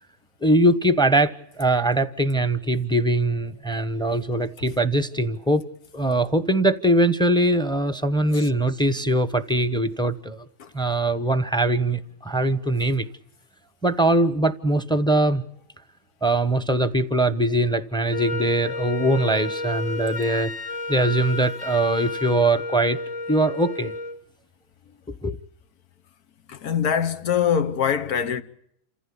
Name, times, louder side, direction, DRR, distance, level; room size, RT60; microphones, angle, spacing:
voice 1, 0.4-5.6 5.9-10.5 10.7-13.1 13.8-15.4 16.2-20.5 20.9-23.0 23.3-23.9 25.2-25.4, right 1 dB, 5° left, 0.8 m, -22 dB
Wind instrument woodwind instrument, 18.1-24.2, left 2 dB, 30° left, 1.0 m, -31 dB
voice 2, 26.5-28.4, left 8 dB, 85° left, 1.7 m, -23 dB
28.5 x 15.0 x 8.6 m
omnidirectional pair, 1.6 m